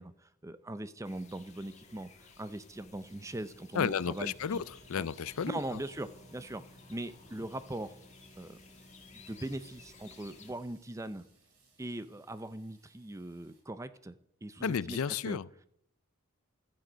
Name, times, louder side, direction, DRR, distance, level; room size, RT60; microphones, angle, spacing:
voice 1, 0.0-4.6 5.0-5.1 5.5-6.6 6.9-7.9 8.4-8.6 9.1-11.2 11.8-14.1 14.4-15.0 15.3-15.4, right 1 dB, 15° right, 0.5 m, -40 dB
sound 1, 1.0-10.5, left 4 dB, 30° left, 1.7 m, -56 dB
voice 2, 3.7-5.6 14.6-15.7, left 7 dB, 75° left, 0.4 m, -33 dB
Water tap faucet / Sink (filling or washing), 4.0-13.6, right 4 dB, 85° right, 4.2 m, -68 dB
sound 2, 4.2-13.5 13.8-13.9 14.1-14.3, equal, 50° right, 1.8 m, -62 dB
15.0 x 12.5 x 5.1 m
head